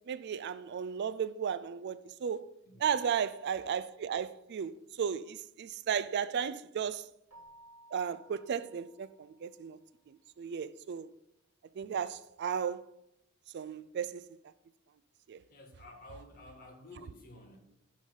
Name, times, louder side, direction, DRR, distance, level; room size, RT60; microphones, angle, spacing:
voice 1, 0.1-2.5 2.8-7.1 7.9-9.8 10.1-11.1 11.8-12.9 13.5-14.2 15.3-15.4, right 7 dB, 55° right, 0.4 m, -35 dB
Keyboard (musical), 7.3-9.7, right 1 dB, 80° right, 2.8 m, -58 dB
voice 2, 15.5-17.6, left 2 dB, 45° left, 2.0 m, -52 dB
11.0 x 3.9 x 5.4 m
head